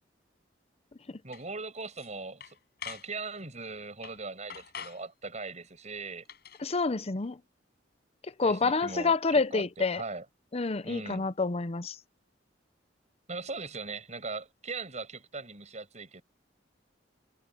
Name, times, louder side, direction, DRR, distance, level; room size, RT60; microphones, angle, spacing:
voice 1, 1.2-2.6 2.8-6.2 8.4-10.2 10.8-11.3 13.3-16.2, right 3 dB, 40° right, 7.2 m, -40 dB
sound 1, 1.3-1.4 1.8-2.1 2.4-3.1 4.0-4.2 4.5-5.0 6.2-6.6, left 8 dB, 60° left, 4.9 m, -44 dB
voice 2, 6.6-7.4 8.2-10.0 10.5-12.0, left 4 dB, 35° left, 0.7 m, -28 dB
head